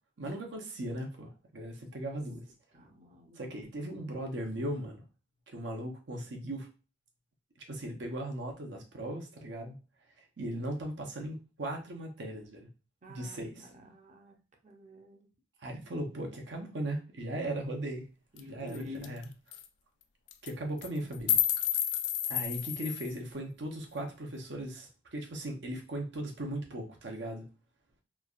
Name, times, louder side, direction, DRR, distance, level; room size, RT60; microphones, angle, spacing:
voice 1, 0.2-2.4 3.4-5.0 5.5-6.7 7.7-9.8 10.4-12.7 13.1-13.7 15.6-18.0 18.5-19.2 20.4-21.4 22.3-27.5, right 1 dB, 75° right, 2 dB, 0.7 m, -38 dB
voice 2, 2.7-3.9 13.0-14.3 14.6-15.3 18.3-19.2, left 2 dB, 40° right, 3 dB, 0.6 m, -48 dB
sound 1, 18.4-18.5 18.7-18.8 19.0-19.2 19.5-19.6 20.3-20.5 20.8-23.1, left 10 dB, 75° left, 0.3 m, -30 dB
3.2 x 2.3 x 2.4 m, 0.32 s
head